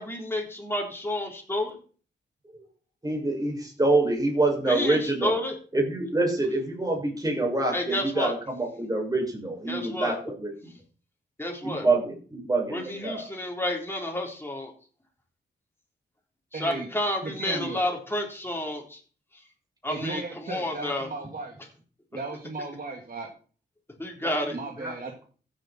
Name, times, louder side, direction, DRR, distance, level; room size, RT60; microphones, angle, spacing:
voice 1, 0.0-1.8 4.7-5.5 7.7-8.3 9.7-10.1 11.4-11.9 12.7-14.7 16.6-19.0 19.8-21.1 24.0-24.6, left 1 dB, 10° left, 0 dB, 3.9 m, -30 dB
voice 2, 3.0-5.3 5.7-10.5 11.6-13.2 24.2-24.4 24.8-24.9, right 2 dB, 20° right, 0 dB, 6.5 m, -26 dB
voice 3, 16.5-16.9 17.2-17.8 19.9-21.6 22.1-23.3 24.5-25.1, right 3 dB, 50° right, 1 dB, 2.3 m, -36 dB
15.0 x 8.4 x 4.5 m, 0.41 s
cardioid pair, 85°, 19 cm